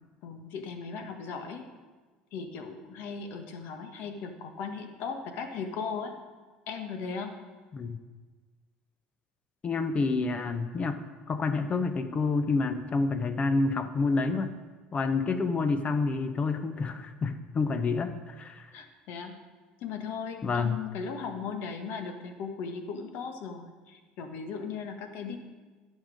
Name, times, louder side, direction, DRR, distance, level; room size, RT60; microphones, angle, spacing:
voice 1, 0.2-1.6 2.3-6.1 6.7-7.4 18.7-19.4 19.8-25.4, left 5 dB, 65° left, 6 dB, 1.3 m, -37 dB
voice 2, 9.6-11.0 11.3-14.6 14.9-18.7 20.4-20.8, left 3 dB, 35° left, 9 dB, 0.8 m, -28 dB
10.5 x 6.5 x 5.2 m, 1.3 s
hypercardioid pair, 70°, 4 cm